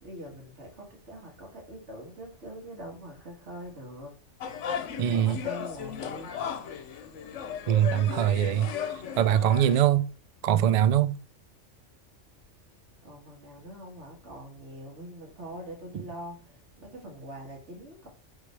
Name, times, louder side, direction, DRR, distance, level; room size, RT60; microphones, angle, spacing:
voice 1, 0.0-4.1 4.5-4.6 4.9-6.9 13.0-18.1, right 1 dB, 65° right, 2.0 m, -44 dB
sound 1, 4.4-9.8, left 8 dB, 75° left, 1.0 m, -36 dB
voice 2, 5.0-5.4 7.7-8.7 9.2-10.1 10.4-11.2 15.9-16.0, right 10 dB, 85° right, 0.3 m, -22 dB
8.1 x 3.8 x 3.3 m
omnidirectional pair, 1.3 m